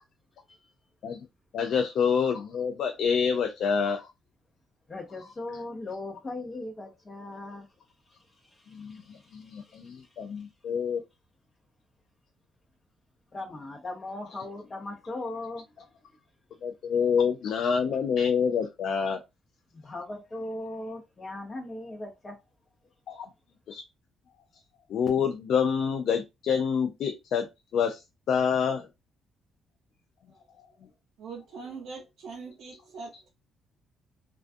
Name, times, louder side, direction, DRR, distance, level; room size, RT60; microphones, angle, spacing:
voice 1, 1.5-4.1 8.7-11.0 16.6-19.2 23.1-23.3 23.7-23.8 24.9-27.5 27.7-28.0 28.3-28.9, left 6 dB, 70° left, 0.4 m, -27 dB
voice 2, 4.9-7.7 8.2-10.1 13.3-15.6 19.7-22.4, left 2 dB, 35° left, 0.7 m, -39 dB
voice 3, 31.2-33.3, right 4 dB, 75° right, 0.6 m, -42 dB
2.3 x 2.3 x 2.5 m
cardioid pair, 90°, 0 cm